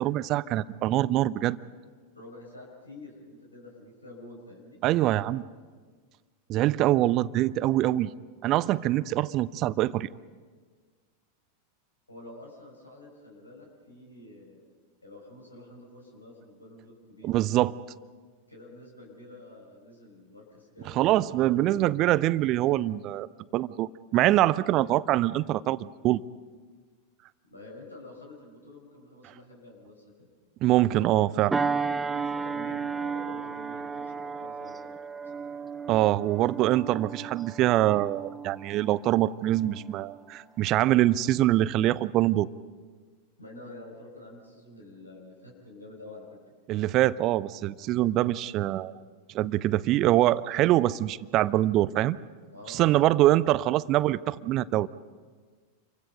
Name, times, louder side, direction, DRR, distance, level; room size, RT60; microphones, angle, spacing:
voice 1, 0.0-1.6 4.8-5.4 6.5-8.1 8.4-10.1 17.2-17.7 21.0-23.3 23.5-25.8 26.0-26.2 30.6-31.5 35.9-42.5 46.7-48.9 49.3-52.2 52.7-54.9, right 15 dB, 35° right, 18 dB, 0.6 m, -24 dB
voice 2, 2.1-4.8 12.1-14.6 15.0-17.4 18.5-21.9 24.7-25.0 27.5-30.3 32.2-35.5 43.4-46.4 52.5-53.3, left 2 dB, 80° left, 0 dB, 5.5 m, -48 dB
sound 1, 31.5-40.4 40.8-41.0, right 5 dB, 10° right, 0.8 m, -34 dB
28.5 x 24.0 x 5.4 m, 1.5 s
figure-of-eight pair, 90°, 0 cm